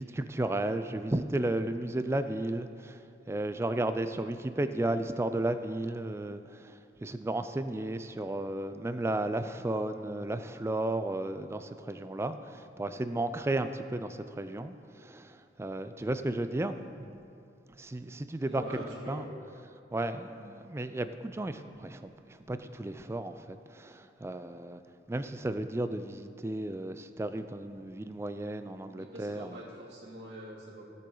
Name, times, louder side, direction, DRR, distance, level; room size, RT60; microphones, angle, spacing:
voice 1, 0.0-17.1 17.8-18.6 19.1-19.2 19.9-24.8 25.1-29.6, right 1 dB, 15° right, 10 dB, 0.3 m, -34 dB
voice 2, 18.4-19.3 29.0-30.8, equal, 65° right, -5 dB, 2.5 m, -44 dB
17.0 x 6.8 x 3.9 m, 2.5 s
head